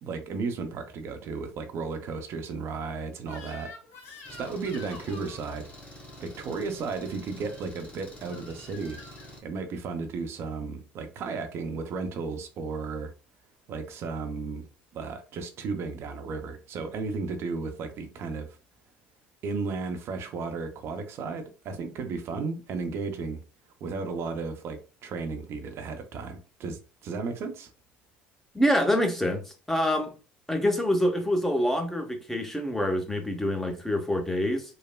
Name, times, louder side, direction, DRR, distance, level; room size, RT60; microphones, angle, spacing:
voice 1, 0.0-3.7 4.1-5.7 6.2-9.0 9.4-13.1 13.7-14.7 14.9-18.5 19.4-23.4 23.8-27.7, right 4 dB, 55° right, 0.5 m, -34 dB
Crying sobbing / Screech, 3.2-5.4 7.3-7.7 8.3-9.3, left 3 dB, 60° left, 1.0 m, -47 dB
Engine, 4.3-9.4, left 1 dB, 25° left, 1.0 m, -47 dB
voice 2, 28.5-30.1 30.5-34.8, equal, 5° left, 0.6 m, -26 dB
3.1 x 2.0 x 2.2 m
hypercardioid pair, 65°, 5 cm